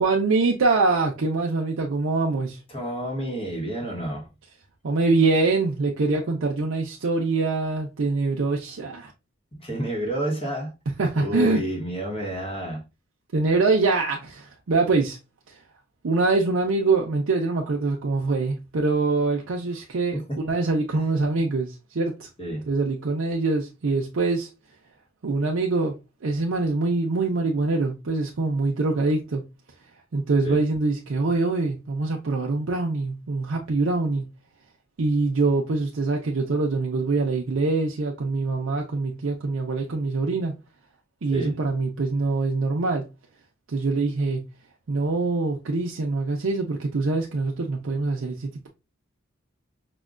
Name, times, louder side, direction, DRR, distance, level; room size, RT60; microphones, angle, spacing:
voice 1, 0.0-2.6 4.8-9.1 11.0-11.6 13.3-15.2 15.5-15.6 16.0-22.3 22.7-24.5 25.2-25.9 26.2-29.4 30.1-34.3 35.0-40.5 41.2-43.0 43.7-44.5 44.9-48.7, right 3 dB, 70° right, 0.5 m, -24 dB
voice 2, 2.7-4.3 9.6-10.7 11.2-12.9 20.1-20.4 22.4-22.7 30.4-30.6 41.3-41.6, equal, 25° left, 0.9 m, -29 dB
5.1 x 2.2 x 2.3 m
head